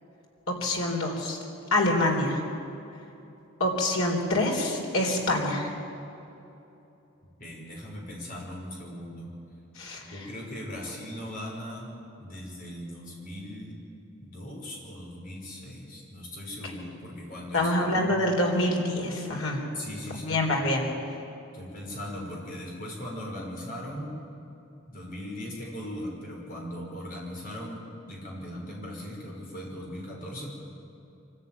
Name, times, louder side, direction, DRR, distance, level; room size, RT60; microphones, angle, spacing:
voice 1, 0.5-1.4 1.7-2.4 3.6-5.7 9.8-10.0 17.5-19.6 20.1-20.9, left 1 dB, 90° left, 1 dB, 3.9 m, -26 dB
voice 2, 7.4-9.3 10.0-11.9 12.2-13.8 14.2-18.2 19.7-20.4 21.5-24.2 24.9-27.8 28.1-30.5, left 1 dB, 40° left, -2 dB, 5.7 m, -39 dB
24.5 x 14.0 x 9.4 m, 2.8 s
head